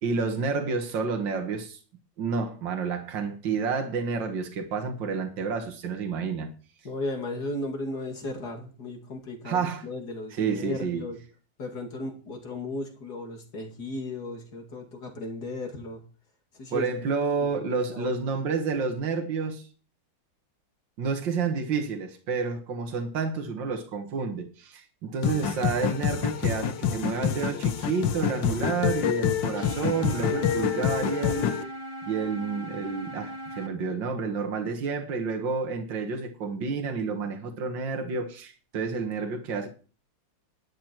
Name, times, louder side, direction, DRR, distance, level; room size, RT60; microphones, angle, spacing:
voice 1, 0.0-1.8 2.2-6.5 9.5-9.9 10.3-11.0 16.7-19.7 21.0-31.5 32.0-39.7, right 5 dB, 70° right, 2.3 m, -30 dB
voice 2, 6.8-11.2 11.6-16.0 16.5-16.9 17.9-18.2, left 2 dB, 55° left, 2.9 m, -35 dB
sound 1, 25.2-31.6, left 8 dB, 70° left, 1.7 m, -27 dB
sound 2, 29.5-33.7, equal, 15° left, 1.3 m, -39 dB
12.0 x 10.5 x 4.6 m
omnidirectional pair, 2.1 m